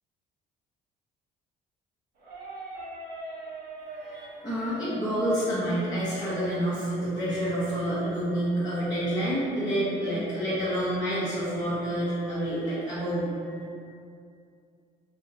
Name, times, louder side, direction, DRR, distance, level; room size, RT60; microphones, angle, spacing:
sound 1, 2.2-7.8, right 2 dB, 60° right, 0.9 m, -44 dB
voice 1, 3.9-13.6, equal, 20° left, -12 dB, 0.6 m, -28 dB
2.7 x 2.1 x 2.6 m, 2.4 s
cardioid pair, 110°, 17 cm